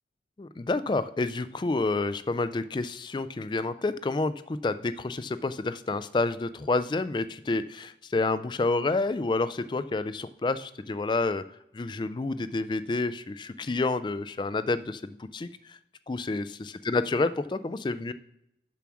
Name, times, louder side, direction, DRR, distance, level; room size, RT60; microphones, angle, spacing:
voice 1, 0.4-11.4 11.7-15.8 16.1-16.4 16.9-18.1, left 3 dB, 25° left, 13 dB, 0.3 m, -29 dB
7.0 x 5.8 x 6.1 m, 0.82 s
head